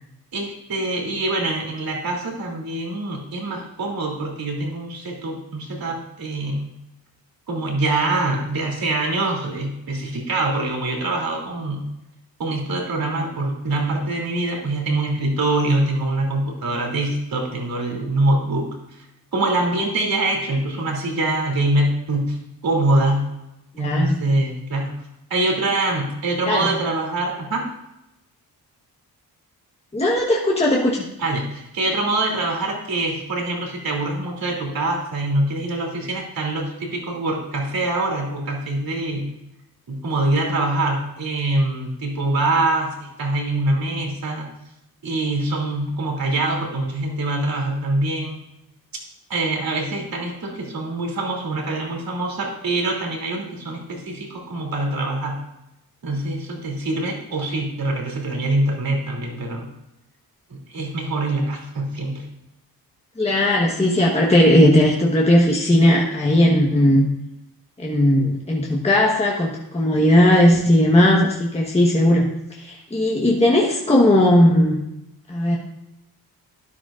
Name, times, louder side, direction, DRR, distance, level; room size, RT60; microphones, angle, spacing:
voice 1, 0.3-6.7 7.5-11.8 12.4-19.0 19.3-22.4 22.6-23.3 23.8-24.9 25.3-27.6 31.2-39.3 39.9-44.5 45.0-48.4 49.3-55.4 56.0-59.7 60.5-62.2, right 2 dB, 65° right, 0 dB, 3.1 m, -24 dB
voice 2, 23.7-24.1 26.5-26.7 29.9-31.1 63.2-67.1 67.8-74.8 75.3-75.6, left 1 dB, 15° left, -3 dB, 1.3 m, -17 dB
13.0 x 11.0 x 2.5 m, 0.88 s
wide cardioid pair, 120°, 38 cm